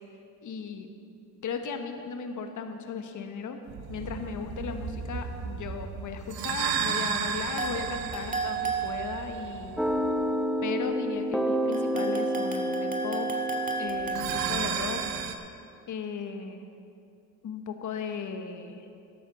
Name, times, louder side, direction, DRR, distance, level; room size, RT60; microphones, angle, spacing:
voice 1, 0.4-0.9 1.4-3.6 3.9-9.8 10.6-13.3 13.8-15.0 15.9-16.6 17.4-18.8, left 6 dB, 45° left, 6 dB, 1.4 m, -36 dB
sound 1, 3.7-10.3 14.0-15.4, right 7 dB, 55° right, 1.2 m, -33 dB
sound 2, 7.6-9.6 11.7-14.5, right 5 dB, 20° right, 2.3 m, -33 dB
sound 3, 9.8-15.3, equal, ahead, 0.9 m, -30 dB
11.5 x 8.6 x 6.9 m, 2.5 s
hypercardioid pair, 65°, 43 cm